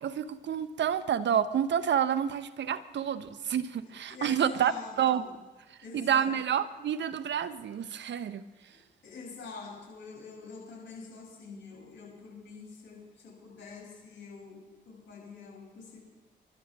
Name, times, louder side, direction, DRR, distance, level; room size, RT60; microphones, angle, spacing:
voice 1, 0.0-5.2 5.9-8.4, right 9 dB, 60° right, 14 dB, 0.9 m, -29 dB
voice 2, 3.8-5.3 5.8-6.4 8.7-16.0, left 4 dB, 65° left, -3 dB, 7.3 m, -46 dB
28.5 x 12.0 x 3.6 m, 1.2 s
hypercardioid pair, 45°, 21 cm